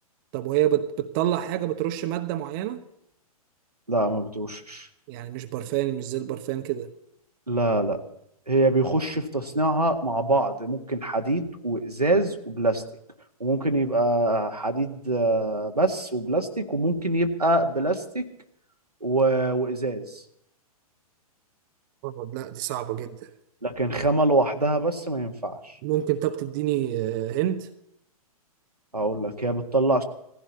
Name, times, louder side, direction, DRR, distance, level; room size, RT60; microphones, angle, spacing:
voice 1, 0.3-2.8 5.1-6.9 22.0-23.3 25.8-27.7, right 12 dB, 35° right, 8 dB, 1.0 m, -27 dB
voice 2, 3.9-4.9 7.5-8.0 8.5-12.8 13.4-18.2 19.0-20.2 23.6-25.8 28.9-30.0, right 2 dB, 85° right, 4 dB, 1.8 m, -24 dB
18.5 x 15.5 x 4.2 m, 0.76 s
figure-of-eight pair, 110°, 19 cm